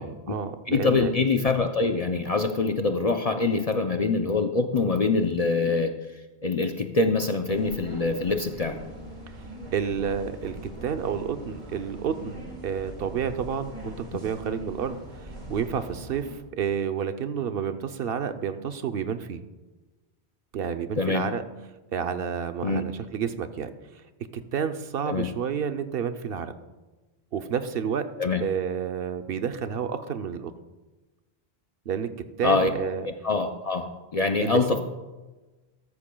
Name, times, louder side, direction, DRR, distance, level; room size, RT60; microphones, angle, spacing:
voice 1, 0.0-1.1 9.3-9.4 9.7-19.4 20.5-21.4 21.9-23.7 24.3-26.5 27.3-28.1 28.4-30.5 31.9-33.1 34.4-34.6, right 7 dB, 70° right, 8 dB, 0.9 m, -30 dB
voice 2, 0.7-5.9 6.4-8.8 21.0-21.2 22.6-22.8 25.1-25.3 28.2-28.4 32.4-32.7 33.0-34.8, left 3 dB, 45° left, 5 dB, 0.6 m, -24 dB
sound 1, 7.5-16.4, right 1 dB, 45° right, 1.7 m, -41 dB
13.5 x 13.5 x 2.3 m, 1.2 s
omnidirectional pair, 1.0 m